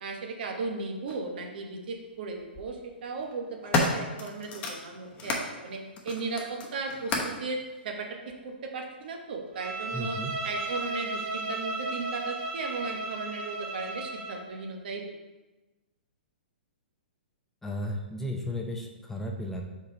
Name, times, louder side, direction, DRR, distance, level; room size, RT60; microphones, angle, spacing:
voice 1, 0.0-10.2 10.4-15.0, right 3 dB, 60° right, 2 dB, 1.1 m, -36 dB
sound 1, 1.1-1.2 2.3-2.6 3.2-5.5 5.9-7.4 8.3-8.4, left 2 dB, 20° left, 0.9 m, -31 dB
Bowed string instrument, 9.5-14.5, right 2 dB, 40° right, 1.0 m, -34 dB
voice 2, 9.9-10.4 17.6-19.6, left 1 dB, 5° left, 0 dB, 0.6 m, -34 dB
4.9 x 4.1 x 5.1 m, 1.1 s
hypercardioid pair, 130°, 6 cm